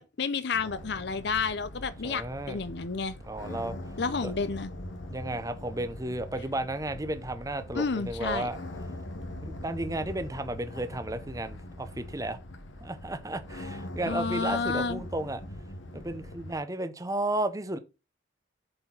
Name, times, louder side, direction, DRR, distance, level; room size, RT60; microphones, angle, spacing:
voice 1, 0.0-3.2 4.0-4.7 7.7-8.5 14.1-15.0, left 4 dB, 60° left, 0.7 m, -30 dB
sound 1, 0.5-16.6, left 1 dB, 85° left, 1.4 m, -42 dB
voice 2, 2.0-2.6 3.2-3.8 4.2-4.3 5.1-8.6 9.4-12.4 12.8-15.4 15.9-17.8, right 1 dB, 20° right, 0.8 m, -33 dB
7.7 x 4.5 x 5.6 m
head